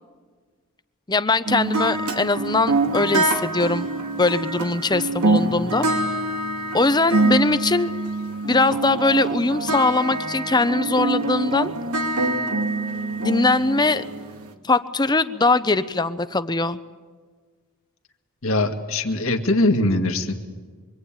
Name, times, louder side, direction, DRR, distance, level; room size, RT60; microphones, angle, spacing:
voice 1, 1.1-3.9 4.2-6.1 6.7-7.9 8.4-11.7 13.2-14.0 14.6-16.8, left 3 dB, 20° left, 13 dB, 0.7 m, -21 dB
sound 1, 1.5-14.5, right 2 dB, 85° right, 2.3 m, -25 dB
voice 2, 18.4-20.3, left 2 dB, 65° left, 4 dB, 2.0 m, -21 dB
25.0 x 24.0 x 9.0 m, 1.5 s
head